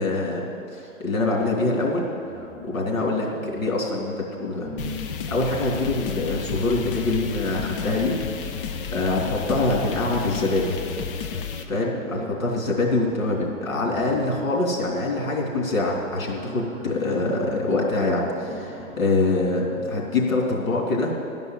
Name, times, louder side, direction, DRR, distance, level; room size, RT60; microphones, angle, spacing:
voice 1, 0.0-2.1 2.4-4.7 5.3-8.1 8.6-10.8 11.6-21.1, left 2 dB, 85° left, -2 dB, 3.2 m, -25 dB
sound 1, 2.2-4.0 4.5-10.2 11.1-11.2 11.5-20.3, equal, 25° right, 1.7 m, -41 dB
sound 2, 4.8-11.6, left 6 dB, 45° left, 0.7 m, -32 dB
12.5 x 5.4 x 9.1 m, 2.7 s
hypercardioid pair, 145°, 40 cm